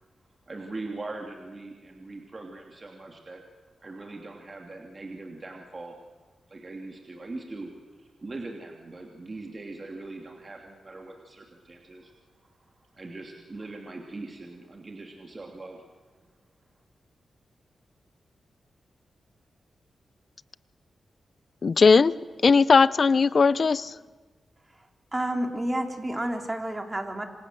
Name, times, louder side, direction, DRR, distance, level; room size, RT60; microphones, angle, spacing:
voice 1, 0.5-3.4 3.8-6.0 6.5-7.7 8.0-15.8 16.2-16.3, right 2 dB, 35° right, 2 dB, 2.9 m, -41 dB
voice 2, 21.6-22.1 22.4-23.9, left 5 dB, 55° left, 18 dB, 0.7 m, -18 dB
voice 3, 25.1-27.2, right 1 dB, 20° right, 4 dB, 3.6 m, -30 dB
27.0 x 26.5 x 7.9 m, 1.4 s
cardioid pair, 75°, 0 cm